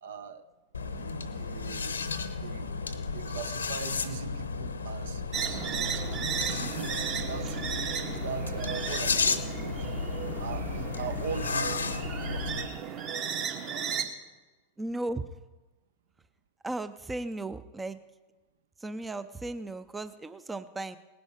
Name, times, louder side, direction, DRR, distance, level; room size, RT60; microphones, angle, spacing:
voice 1, 0.0-0.4 0.9-2.0 2.4-2.7 3.1-5.2 5.7-7.6 8.0-10.0 10.4-13.0 13.6-14.1, right 6 dB, 60° right, 13 dB, 0.8 m, -41 dB
sound 1, 0.7-12.7, left 4 dB, 75° left, 0.9 m, -33 dB
sound 2, 5.3-14.0, right 7 dB, 40° right, 1.4 m, -35 dB
voice 2, 14.8-15.2 16.6-18.0 18.8-21.0, right 2 dB, 10° right, 13 dB, 0.5 m, -36 dB
18.5 x 10.5 x 5.0 m, 1.2 s
figure-of-eight pair, 90°, 0 cm